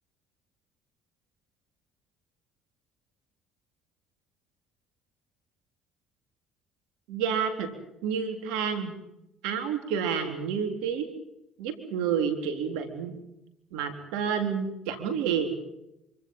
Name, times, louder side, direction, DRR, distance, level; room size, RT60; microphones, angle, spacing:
voice 1, 7.1-7.7 8.0-8.9 9.4-11.1 11.6-13.2 13.7-15.6, right 7 dB, 85° right, 6 dB, 3.9 m, -29 dB
26.0 x 25.0 x 5.6 m, 0.88 s
supercardioid pair, 75°, 0 cm